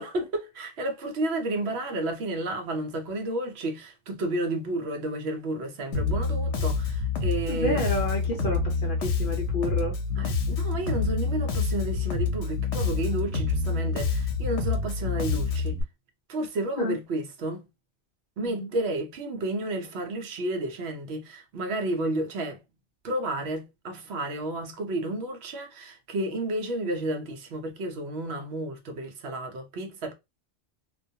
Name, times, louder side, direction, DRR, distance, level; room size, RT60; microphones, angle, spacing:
voice 1, 0.0-7.8 10.2-15.8 16.3-17.7 18.4-22.6 23.0-30.1, right 1 dB, 65° right, 0.9 m, -31 dB
Bass guitar, 5.9-15.8, left 4 dB, 85° left, 0.9 m, -27 dB
voice 2, 7.5-10.0 16.8-17.0 18.4-18.7, left 1 dB, 55° left, 0.7 m, -30 dB
2.4 x 2.2 x 2.7 m
omnidirectional pair, 1.2 m